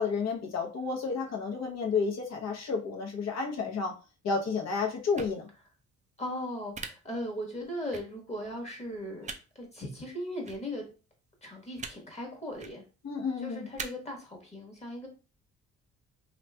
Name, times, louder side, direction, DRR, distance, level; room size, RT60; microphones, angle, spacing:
voice 1, 0.0-3.9 4.2-5.5 13.0-13.7, left 5 dB, 60° left, 1 dB, 0.9 m, -31 dB
sound 1, 5.1-5.3 6.7-6.9 7.9-8.0 9.2-9.4 10.4-10.6 11.8-11.9 12.5-12.7 13.8-13.9, right 5 dB, 25° right, 0.4 m, -39 dB
voice 2, 6.2-9.3 9.5-10.8 11.4-12.8 13.4-15.1, equal, 20° left, 0 dB, 1.1 m, -38 dB
3.0 x 2.7 x 2.2 m, 0.34 s
cardioid pair, 90°, 30 cm